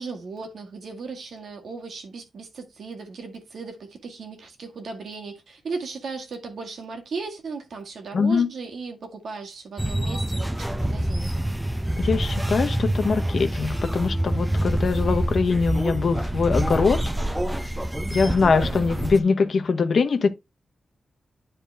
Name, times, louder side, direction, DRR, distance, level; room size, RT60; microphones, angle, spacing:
voice 1, 0.0-11.3 18.6-19.0, right 4 dB, 70° right, 1.9 m, -36 dB
voice 2, 8.1-8.5 12.0-17.0 18.1-20.3, left 4 dB, 55° left, 1.0 m, -22 dB
sound 1, 9.8-19.2, right 1 dB, 10° right, 0.6 m, -26 dB
9.9 x 4.4 x 3.4 m
wide cardioid pair, 115°, 0 cm